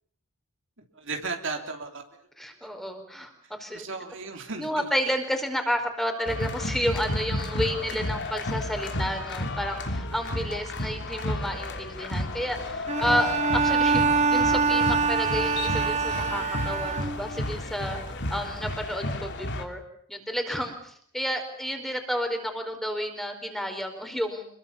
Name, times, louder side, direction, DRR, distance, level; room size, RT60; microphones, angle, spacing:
voice 1, 0.9-2.0 3.7-4.9, right 3 dB, 55° right, 4 dB, 3.2 m, -35 dB
voice 2, 2.4-3.3 3.6-3.8 4.6-18.0 18.3-19.8 20.1-24.5, equal, ahead, 5 dB, 4.6 m, -31 dB
sound 1, 6.3-19.6, left 1 dB, 55° left, 2.9 m, -32 dB
Bowed string instrument, 12.9-17.5, right 5 dB, 30° right, 1.5 m, -25 dB
27.0 x 22.0 x 7.1 m, 0.63 s
head